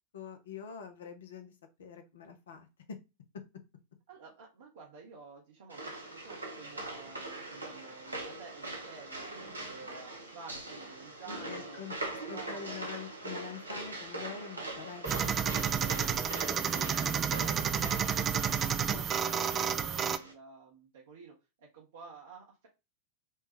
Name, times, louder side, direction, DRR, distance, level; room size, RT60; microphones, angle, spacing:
voice 1, 0.1-3.0 11.3-11.9 12.3-15.4 18.7-19.0, left 6 dB, 60° left, 7 dB, 0.7 m, -45 dB
voice 2, 4.1-9.3 9.7-11.8 12.2-12.8 15.6-18.5 18.9-22.7, right 5 dB, 60° right, -2 dB, 0.9 m, -51 dB
sound 1, 5.7-20.3, right 2 dB, 80° right, 0.8 m, -42 dB
sound 2, 15.1-20.2, right 8 dB, 25° right, 0.3 m, -30 dB
4.5 x 2.3 x 2.9 m, 0.26 s
figure-of-eight pair, 90°, 0 cm